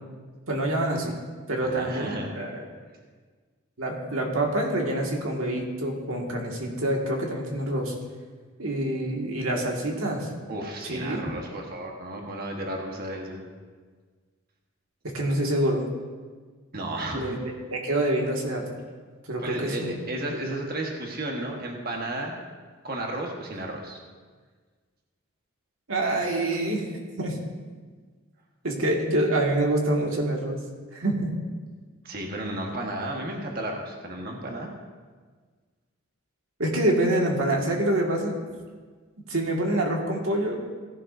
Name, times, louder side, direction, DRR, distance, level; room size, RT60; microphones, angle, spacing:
voice 1, 0.5-1.2 1.5-2.7 3.8-7.9 8.6-10.3 10.8-11.2 15.1-15.9 17.1-18.6 19.3-19.9 25.9-26.9 27.2-27.4 28.6-30.6 30.9-31.3 36.6-38.4 39.3-40.6, right 1 dB, 85° right, 0 dB, 2.0 m, -26 dB
voice 2, 1.6-2.3 10.5-13.5 16.7-17.4 19.4-22.4 22.8-24.0 32.0-34.7, right 1 dB, 45° right, 0 dB, 1.4 m, -33 dB
17.0 x 11.0 x 2.7 m, 1.5 s
head